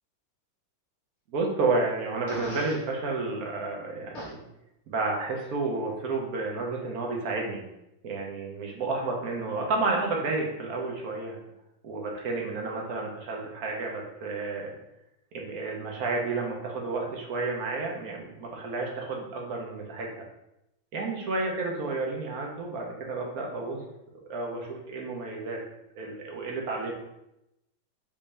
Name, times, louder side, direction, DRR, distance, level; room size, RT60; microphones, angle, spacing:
voice 1, 1.3-4.4 4.9-7.6 8.0-11.4 11.8-14.7 15.3-20.2 20.9-23.8 24.2-25.6 26.0-26.9, right 3 dB, 60° right, 0 dB, 1.0 m, -31 dB
Fart, 2.3-2.8 4.1-4.3, equal, 55° left, 0.7 m, -38 dB
5.3 x 2.7 x 3.3 m, 0.86 s
omnidirectional pair, 2.2 m